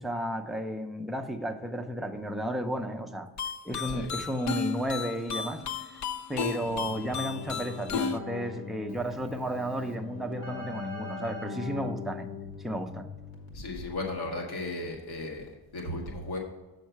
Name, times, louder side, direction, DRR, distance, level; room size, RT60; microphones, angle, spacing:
voice 1, 0.0-3.3 3.6-5.6 6.3-12.3 12.6-13.1, equal, ahead, 3 dB, 0.5 m, -33 dB
sound 1, 3.4-8.2, left 6 dB, 45° left, 0.6 m, -34 dB
Keyboard (musical), 6.6-13.9, left 5 dB, 65° left, 1.7 m, -41 dB
voice 2, 13.5-16.4, left 2 dB, 80° left, 0 dB, 1.8 m, -35 dB
7.1 x 6.5 x 4.6 m, 1.2 s
cardioid pair, 135°, 38 cm